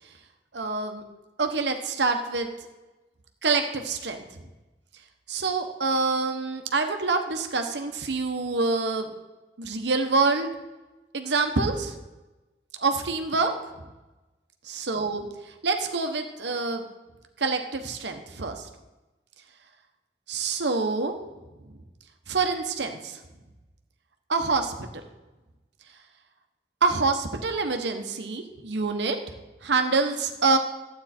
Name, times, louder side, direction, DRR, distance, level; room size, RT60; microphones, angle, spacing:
voice 1, 0.5-1.0 1.4-2.5 3.4-4.3 5.3-9.1 9.6-10.5 11.1-11.9 12.8-13.5 14.9-15.3 15.6-16.8 17.4-18.7 20.3-21.1 22.3-23.2 24.3-24.9 26.8-29.2 29.6-30.6, right 4 dB, 80° right, 5 dB, 1.1 m, -26 dB
12.5 x 8.6 x 4.3 m, 1.1 s
head